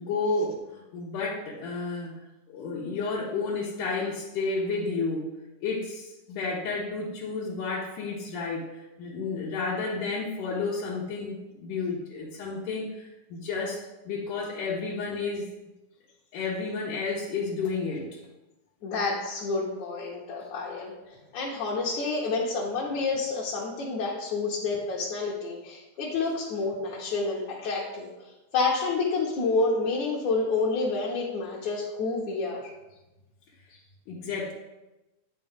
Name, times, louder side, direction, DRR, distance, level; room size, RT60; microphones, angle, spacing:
voice 1, 0.0-2.2 2.5-5.3 5.6-13.8 14.1-15.5 16.3-18.1 34.1-34.5, left 4 dB, 90° left, -6 dB, 2.7 m, -31 dB
voice 2, 18.8-28.1 28.5-32.7, left 3 dB, 70° left, -5 dB, 2.4 m, -29 dB
9.1 x 6.8 x 3.6 m, 1.0 s
omnidirectional pair, 3.5 m